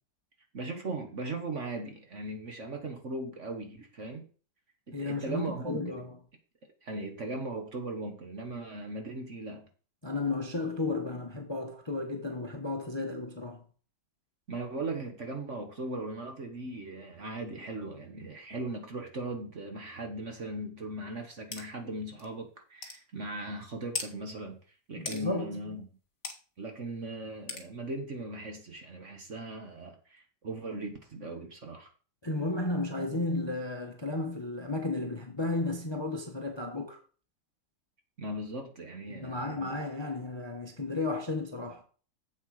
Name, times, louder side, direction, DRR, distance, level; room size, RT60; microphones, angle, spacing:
voice 1, 0.5-4.3 4.9-6.0 6.8-9.7 14.5-24.6 24.9-25.9 26.6-31.9 38.2-39.8, right 2 dB, 45° right, 1.4 m, -38 dB
voice 2, 4.9-6.1 10.0-13.6 25.0-25.6 32.2-37.0 39.1-41.8, left 2 dB, 20° left, 0.9 m, -33 dB
sound 1, 21.5-21.7 22.2-22.3 22.8-23.0 23.9-24.1 25.1-25.2 26.2-26.4 27.5-27.7, left 5 dB, 45° left, 2.1 m, -36 dB
7.8 x 7.6 x 4.8 m
omnidirectional pair, 2.1 m